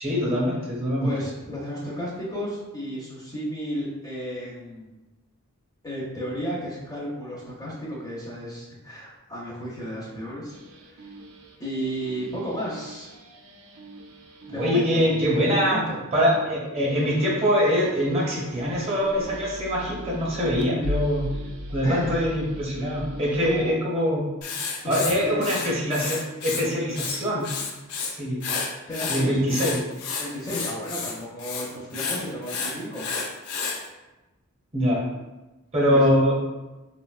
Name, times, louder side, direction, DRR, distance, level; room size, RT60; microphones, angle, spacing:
voice 1, 0.0-1.1 14.5-15.8 16.1-21.2 21.7-24.2 24.8-27.5 28.2-28.4 29.1-29.8 34.7-35.0 35.7-36.3, equal, 25° right, -4 dB, 0.7 m, -23 dB
voice 2, 1.0-4.9 5.8-10.6 10.9-11.0 11.6-13.1 14.5-15.1 15.4-16.0 21.8-22.2 22.8-22.9 23.4-23.7 24.9-25.6 28.9-29.6 30.2-33.1 35.9-36.1, equal, 15° left, -6 dB, 0.5 m, -33 dB
sound 1, 10.5-23.7, left 1 dB, 85° right, 0.4 m, -39 dB
Writing, 24.4-26.6 26.9-28.1 28.4-33.8, left 5 dB, 85° left, 0.4 m, -31 dB
3.7 x 2.1 x 2.3 m, 1.1 s
head